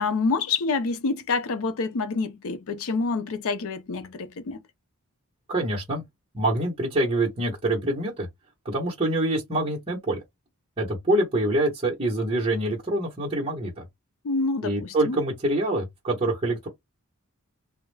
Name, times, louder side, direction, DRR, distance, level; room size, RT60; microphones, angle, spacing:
voice 1, 0.0-4.6 14.2-15.2, left 4 dB, 65° left, 0.5 m, -27 dB
voice 2, 5.5-6.0 6.3-8.3 8.6-10.2 10.8-13.8 14.6-16.7, right 1 dB, 25° right, 1.0 m, -25 dB
2.2 x 2.1 x 3.2 m
head